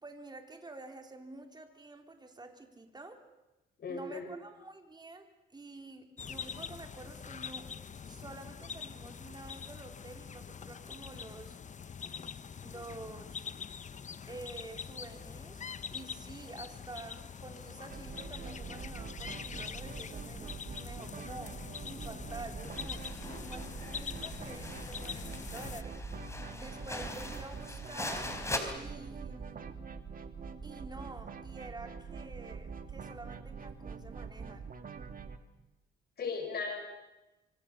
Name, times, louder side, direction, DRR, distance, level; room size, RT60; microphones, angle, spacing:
voice 1, 0.0-3.2 3.9-7.7 8.1-11.6 12.6-13.4 14.3-15.6 15.9-21.6 21.9-23.1 23.4-26.0 26.5-28.3 28.7-29.7 30.6-34.7, right 2 dB, 20° right, 4 dB, 4.0 m, -49 dB
voice 2, 3.8-4.3 36.2-36.8, left 4 dB, 55° left, 2 dB, 6.2 m, -36 dB
sound 1, 6.2-25.8, left 6 dB, 40° left, 1.0 m, -44 dB
sound 2, 17.9-35.4, right 5 dB, 45° right, 2.3 m, -44 dB
sound 3, 22.7-28.6, left 2 dB, 15° left, 4.4 m, -41 dB
26.5 x 25.0 x 6.9 m, 1.0 s
cardioid pair, 90°, 20 cm